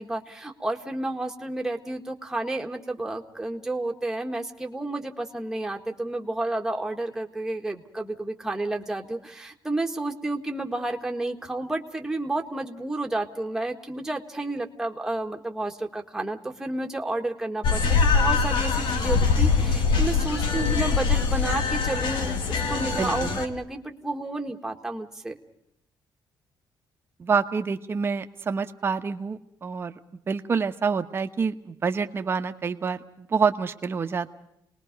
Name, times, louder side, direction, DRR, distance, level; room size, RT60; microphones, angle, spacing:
voice 1, 0.0-25.4, right 2 dB, 5° right, 3 dB, 1.6 m, -31 dB
sound 1, 17.6-23.5, left 5 dB, 80° left, 2.4 m, -23 dB
voice 2, 23.0-23.4 27.2-30.0 30.3-34.3, right 5 dB, 30° right, 7 dB, 1.1 m, -27 dB
29.5 x 20.5 x 5.2 m, 0.78 s
cardioid pair, 170°, 8 cm